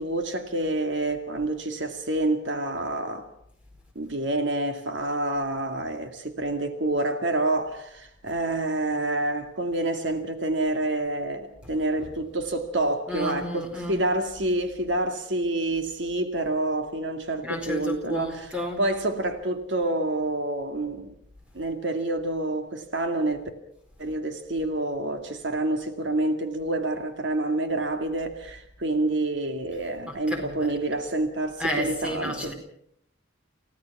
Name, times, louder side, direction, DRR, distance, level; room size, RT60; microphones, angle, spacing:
voice 1, 0.0-3.3 4.0-21.1 21.5-23.5 24.0-32.5, right 2 dB, 70° right, 2.2 m, -28 dB
voice 2, 13.1-14.0 17.4-18.8 30.1-30.7 31.6-32.5, equal, 5° right, 4.4 m, -32 dB
29.0 x 17.0 x 6.1 m
head